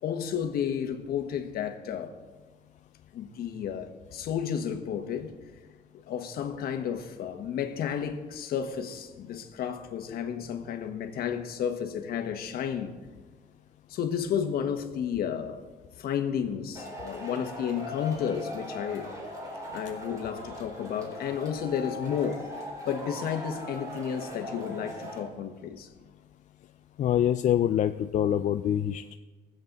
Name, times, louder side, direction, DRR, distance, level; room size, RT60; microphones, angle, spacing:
voice 1, 0.0-2.2 3.1-5.3 6.1-13.0 13.9-15.6 16.0-19.1 19.7-22.4 22.8-25.9, left 8 dB, 65° left, 1.4 m, -32 dB
Male speech man speaking / Shout / Clapping, 16.7-25.2, left 1 dB, 20° right, 4.4 m, -40 dB
voice 2, 27.0-29.2, left 10 dB, 45° left, 0.4 m, -25 dB
21.5 x 7.8 x 4.0 m
cardioid pair, 110°, 17 cm